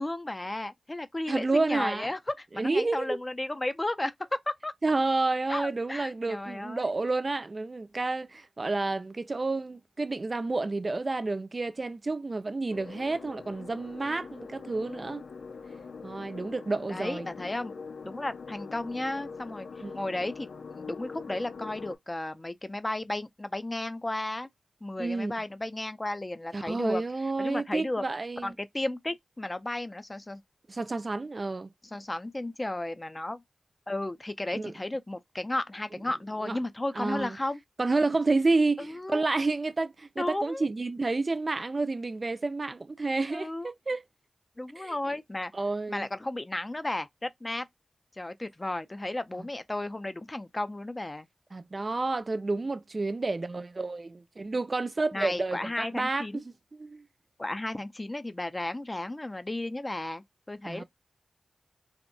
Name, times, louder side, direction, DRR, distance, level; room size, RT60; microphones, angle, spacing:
voice 1, 0.0-4.7 5.5-6.9 16.9-17.7 18.0-24.5 24.8-27.0 27.4-28.0 28.4-30.4 31.9-33.4 33.9-37.6 38.8-39.2 40.2-40.7 43.3-43.7 44.6-45.5 45.9-47.7 48.2-51.3 55.1-56.4 57.4-60.8, left 1 dB, 25° left, 0.4 m, -34 dB
voice 2, 1.3-2.1 2.6-3.2 4.8-15.2 16.0-17.3 19.8-20.0 25.0-25.3 26.5-28.5 30.7-31.7 34.5-34.7 36.4-36.6 37.0-37.4 37.8-44.0 44.8-45.0 45.5-46.1 49.4-49.5 51.5-56.4 56.7-57.0 60.6-60.8, right 3 dB, 45° right, 0.3 m, -30 dB
sound 1, 12.7-22.0, left 5 dB, 85° left, 0.4 m, -43 dB
2.6 x 2.1 x 2.6 m
cardioid pair, 50°, 0 cm